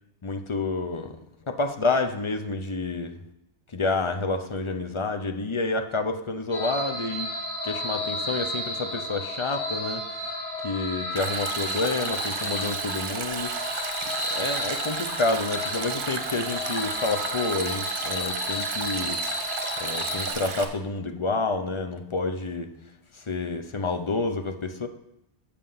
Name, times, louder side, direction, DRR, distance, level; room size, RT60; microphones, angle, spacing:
voice 1, 0.2-1.1 1.5-3.1 3.7-7.3 7.6-10.0 10.6-13.7 14.3-19.2 19.8-22.7 23.3-24.9, left 3 dB, 35° left, 6 dB, 0.6 m, -29 dB
sound 1, 6.5-20.3, left 1 dB, 10° left, 2.2 m, -32 dB
Stream, 11.2-20.7, right 5 dB, 55° right, 1.1 m, -33 dB
7.4 x 6.8 x 5.7 m, 0.84 s
omnidirectional pair, 1.1 m